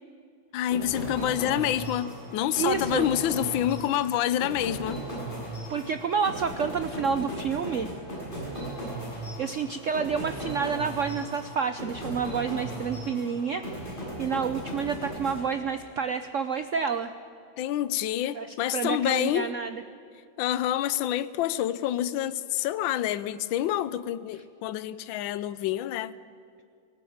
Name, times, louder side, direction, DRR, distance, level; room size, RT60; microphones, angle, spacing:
voice 1, 0.5-5.0 17.6-19.5 20.4-26.2, left 12 dB, 75° left, 1.4 m, -27 dB
sound 1, 0.7-16.0, right 1 dB, 25° left, 7.3 m, -37 dB
voice 2, 2.6-3.1 5.7-7.9 8.9-17.1 18.3-19.8, right 6 dB, 85° right, 0.6 m, -29 dB
19.5 x 18.0 x 8.7 m
omnidirectional pair, 2.3 m